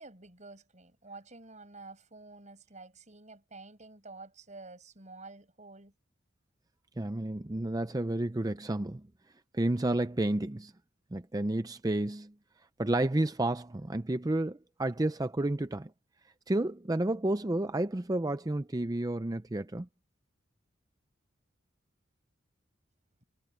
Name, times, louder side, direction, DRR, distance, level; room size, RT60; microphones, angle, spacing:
voice 1, 0.0-5.9, right 3 dB, 35° right, 7.6 m, -50 dB
voice 2, 7.0-9.0 9.5-10.7 11.1-12.3 12.8-15.9 16.5-19.9, right 1 dB, 15° right, 0.5 m, -31 dB
head